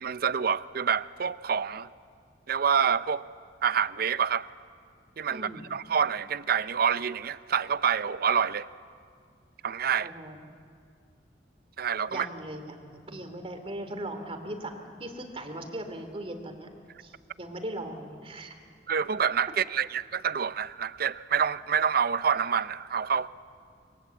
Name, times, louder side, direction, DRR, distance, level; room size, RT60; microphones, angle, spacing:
voice 1, 0.0-1.9 2.5-3.2 3.6-4.5 5.2-8.7 9.6-10.1 11.8-12.3 18.9-23.3, right 7 dB, 55° right, 0.6 m, -27 dB
voice 2, 5.3-5.7 10.0-10.4 12.1-16.7 17.0-18.6, right 1 dB, 30° right, 2.7 m, -39 dB
26.5 x 22.5 x 8.1 m
head